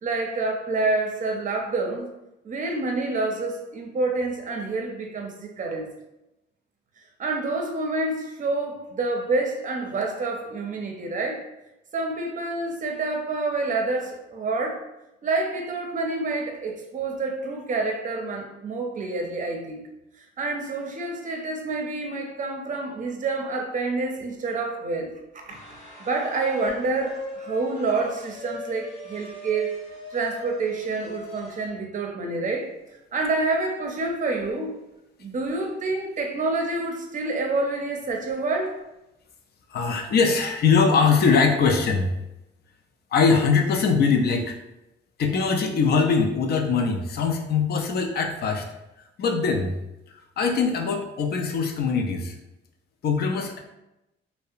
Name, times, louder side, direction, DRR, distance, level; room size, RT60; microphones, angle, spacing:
voice 1, 0.0-2.1 2.4-5.9 7.2-11.5 11.9-14.8 15.2-19.8 20.4-25.1 25.5-25.6 26.0-29.7 30.1-32.7 33.1-34.7 35.2-38.8, right 3 dB, 40° right, 2 dB, 0.5 m, -28 dB
sound 1, 25.5-31.7, left 1 dB, 35° left, 0.9 m, -41 dB
voice 2, 39.7-42.1 43.1-44.6 45.2-48.6 49.2-49.7 50.4-52.3 53.0-53.6, left 5 dB, 55° left, 4 dB, 0.4 m, -22 dB
2.7 x 2.0 x 2.4 m, 0.91 s
cardioid pair, 90°, 20 cm